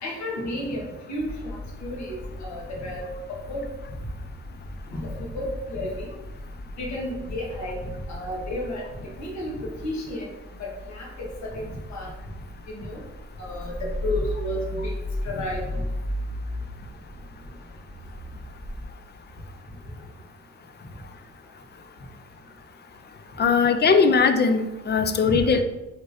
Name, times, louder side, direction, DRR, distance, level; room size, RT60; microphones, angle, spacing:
voice 1, 0.0-3.0 3.5-3.6 4.9-6.1 6.8-10.3 10.6-12.1 12.7-13.0 13.4-15.0 15.2-15.6 25.2-25.4, left 1 dB, 65° left, -2 dB, 1.4 m, -32 dB
sound 1, 1.2-18.8, left 1 dB, ahead, 1.3 m, -36 dB
voice 2, 23.4-25.6, left 5 dB, 35° left, 8 dB, 0.4 m, -20 dB
4.8 x 3.6 x 2.6 m, 1.0 s
cardioid pair, 90°, 30 cm